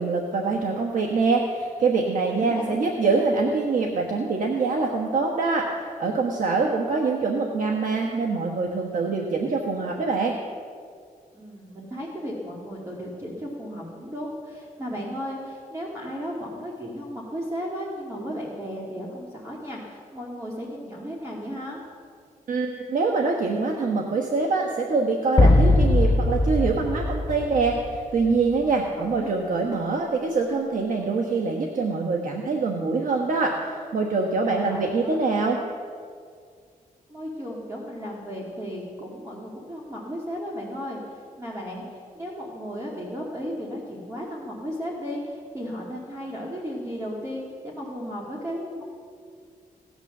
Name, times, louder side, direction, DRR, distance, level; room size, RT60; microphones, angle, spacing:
voice 1, 0.0-5.7 6.0-10.4 22.5-35.6, right 4 dB, 65° right, 1 dB, 1.3 m, -24 dB
voice 2, 2.3-2.8 6.5-6.8 11.3-21.8 29.2-29.3 34.4-35.2 37.1-48.8, equal, 20° right, -5 dB, 2.4 m, -35 dB
sound 1, 25.4-28.2, left 2 dB, 30° left, 0.7 m, -20 dB
17.5 x 9.2 x 6.7 m, 2.2 s
wide cardioid pair, 115°, 15 cm